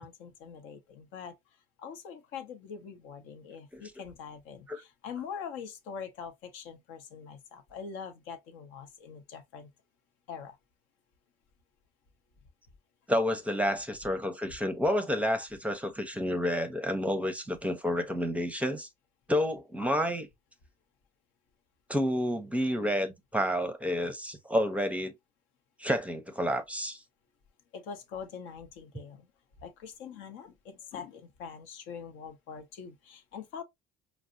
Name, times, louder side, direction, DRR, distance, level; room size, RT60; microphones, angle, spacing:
voice 1, 0.0-1.3 1.8-9.7 10.3-10.6 27.7-29.3 29.6-33.6, left 6 dB, 75° left, 0.8 m, -43 dB
voice 2, 13.1-18.9 19.3-20.3 21.9-25.1 25.8-27.0, equal, 5° right, 0.6 m, -30 dB
4.7 x 2.1 x 2.4 m
supercardioid pair, 90°, 20 cm